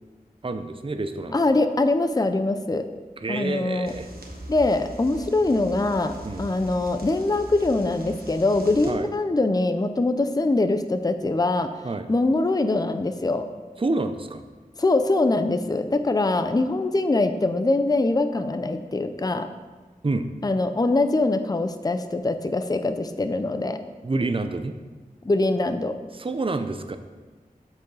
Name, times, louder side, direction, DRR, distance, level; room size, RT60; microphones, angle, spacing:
voice 1, 0.4-1.4 3.2-4.1 6.2-6.5 8.9-9.1 11.8-12.1 13.8-14.4 20.0-20.3 24.0-24.7 26.1-27.0, right 2 dB, 35° right, 8 dB, 0.5 m, -28 dB
voice 2, 1.3-2.9 3.3-3.9 4.5-11.7 12.1-13.4 14.8-19.5 20.4-23.8 25.2-25.9, left 2 dB, 25° left, 9 dB, 0.5 m, -23 dB
sound 1, 3.8-8.9, right 1 dB, 85° right, 1.1 m, -41 dB
7.7 x 4.7 x 5.4 m, 1.3 s
wide cardioid pair, 45°, 15 cm